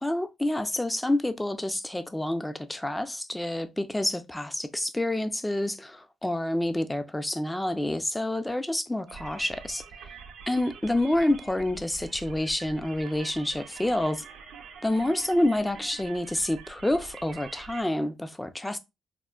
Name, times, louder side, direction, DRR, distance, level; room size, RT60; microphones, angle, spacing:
voice 1, 0.0-9.8 10.5-14.2 14.8-18.8, left 1 dB, 10° left, 0.4 m, -28 dB
sound 1, 9.1-17.8, right 6 dB, 85° right, 0.6 m, -45 dB
3.6 x 2.1 x 2.3 m
cardioid pair, 90°, 0 cm